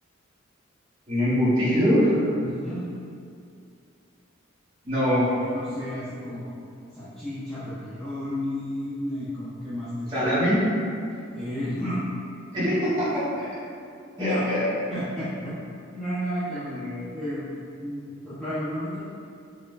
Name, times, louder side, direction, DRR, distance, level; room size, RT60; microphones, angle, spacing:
voice 1, 1.1-2.2 4.8-5.3 10.1-10.6 12.5-13.1 13.4-13.5 14.2-14.6 16.7-17.0, equal, 25° right, -12 dB, 1.4 m, -23 dB
voice 2, 2.3-2.9 5.2-6.5 6.9-10.3 11.3-12.0 12.6-12.7 14.2-14.4 14.9-15.6 15.9-16.8 17.1-17.5 17.8-19.1, equal, 5° left, -14 dB, 0.5 m, -32 dB
4.2 x 2.1 x 2.4 m, 2.4 s
head